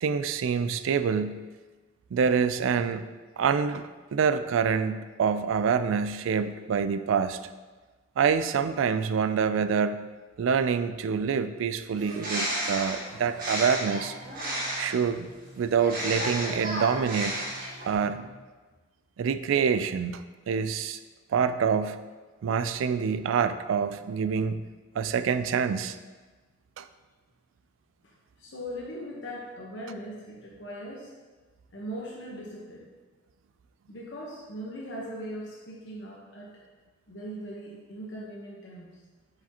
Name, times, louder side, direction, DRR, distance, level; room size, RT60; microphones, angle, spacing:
voice 1, 0.0-1.4 2.1-3.1 3.4-7.4 8.2-10.1 10.4-14.1 14.8-17.4 17.8-18.3 19.2-21.0 21.3-22.0 22.4-24.6 25.0-26.0 26.8-26.9, right 6 dB, 85° right, 12 dB, 0.3 m, -26 dB
Bird, 11.9-15.1 15.8-17.9, right 1 dB, 45° right, 1.6 m, -32 dB
sound 1, 13.2-18.5, equal, 85° left, 1.6 m, -52 dB
voice 2, 28.4-31.1 31.7-32.9 33.9-36.6 37.1-38.9, equal, 70° left, -3 dB, 1.0 m, -39 dB
7.4 x 5.0 x 2.9 m, 1.3 s
head